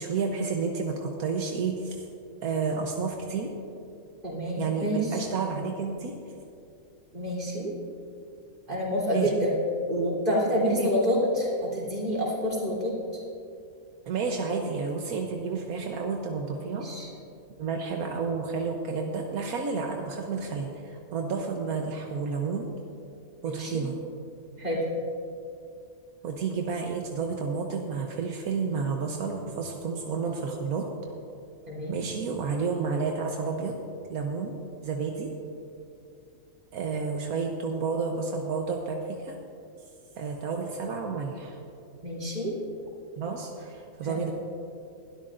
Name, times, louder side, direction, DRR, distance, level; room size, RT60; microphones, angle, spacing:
voice 1, 0.0-2.1 2.4-3.5 4.6-6.2 9.1-9.5 10.7-10.9 14.1-16.9 17.6-22.7 23.4-23.9 26.2-30.9 31.9-33.7 34.1-34.5 34.8-35.3 36.7-39.4 40.2-41.6 43.2-44.3, right 5 dB, 80° right, 2 dB, 1.4 m, -31 dB
voice 2, 4.2-5.1 7.1-7.7 8.7-9.5 9.9-13.2 16.7-17.1 23.5-23.8 24.6-24.8 31.7-32.0 42.0-42.5 44.0-44.2, equal, 35° right, -5 dB, 3.7 m, -28 dB
21.0 x 12.5 x 2.6 m, 2.5 s
omnidirectional pair, 1.5 m